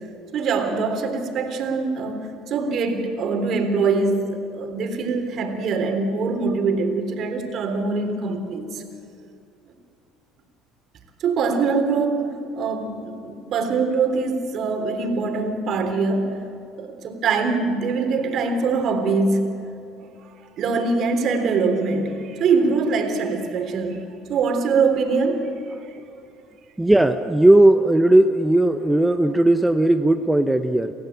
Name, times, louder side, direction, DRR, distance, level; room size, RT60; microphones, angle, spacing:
voice 1, 0.3-8.8 11.2-16.4 16.8-19.6 20.6-24.0 24.3-25.5 25.9-26.0, right 4 dB, 55° right, 5 dB, 3.5 m, -23 dB
voice 2, 26.8-30.9, right 1 dB, 10° right, 7 dB, 0.9 m, -17 dB
28.5 x 15.0 x 8.8 m, 2.6 s
supercardioid pair, 85°, 0 cm